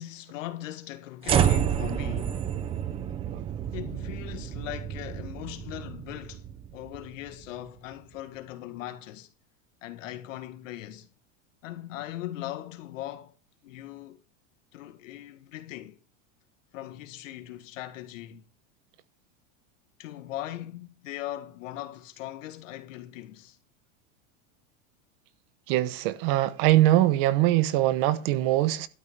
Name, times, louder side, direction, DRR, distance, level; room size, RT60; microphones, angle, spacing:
voice 1, 0.0-2.4 3.7-6.4 6.7-9.3 9.8-11.1 11.6-13.3 13.6-14.2 14.7-16.0 16.7-18.4 20.0-23.6, left 14 dB, 80° left, 2.0 m, -39 dB
sound 1, 1.2-7.6, right 9 dB, 15° right, 0.5 m, -29 dB
voice 2, 25.7-28.9, right 14 dB, 45° right, 1.0 m, -22 dB
12.5 x 5.4 x 8.6 m
supercardioid pair, 165°, 38 cm